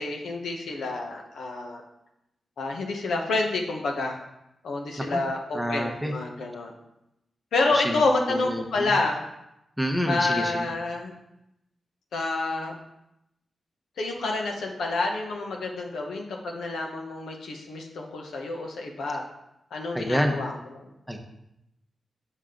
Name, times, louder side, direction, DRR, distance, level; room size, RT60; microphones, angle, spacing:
voice 1, 0.0-1.8 2.6-4.2 4.6-6.7 7.5-9.2 10.1-11.1 12.1-12.7 14.0-19.2 19.7-20.9, left 3 dB, 90° left, 1 dB, 1.0 m, -28 dB
voice 2, 5.5-6.1 7.7-8.0 8.3-8.9 9.8-10.7 19.7-20.3 21.1-21.2, equal, ahead, 3 dB, 1.0 m, -28 dB
6.3 x 5.5 x 3.8 m, 0.85 s
cardioid pair, 65°, 0 cm